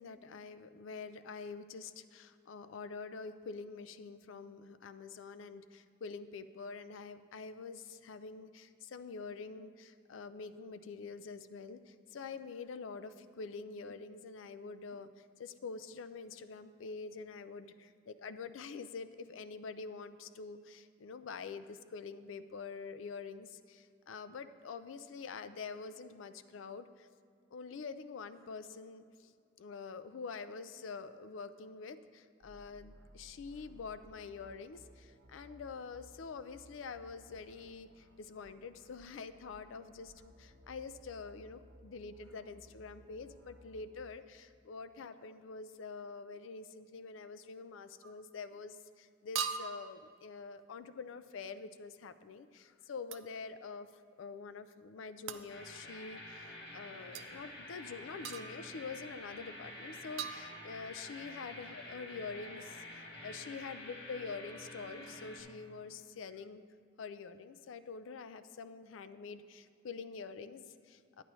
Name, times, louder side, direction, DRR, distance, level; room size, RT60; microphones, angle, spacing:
voice 1, 0.0-27.1 27.5-29.3 29.6-53.9 54.2-66.6 67.0-71.2, left 4 dB, 80° left, 12 dB, 0.4 m, -46 dB
sound 1, 32.4-44.0, equal, 65° right, 1.0 m, -60 dB
sound 2, 48.0-48.3 49.3-50.0 53.1-53.3 55.3-55.5 57.1-57.3 58.2-58.8 60.2-61.0, right 7 dB, 90° right, 0.4 m, -40 dB
sound 3, 55.5-65.4, left 1 dB, 60° left, 1.7 m, -49 dB
10.0 x 9.8 x 3.1 m, 2.2 s
head